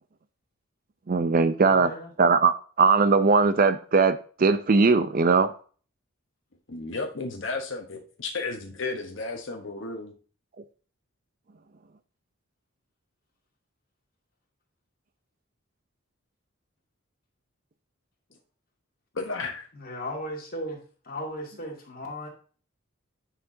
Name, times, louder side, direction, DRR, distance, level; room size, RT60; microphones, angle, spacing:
voice 1, 1.1-1.9 2.2-2.5 2.8-5.5, right 4 dB, 40° right, 0.5 m, -20 dB
voice 2, 1.6-2.1 19.7-20.8 21.0-22.3, equal, 45° left, 2.3 m, -36 dB
voice 3, 6.7-10.1 19.1-19.7, left 3 dB, 60° left, 1.0 m, -33 dB
9.6 x 5.8 x 2.7 m
head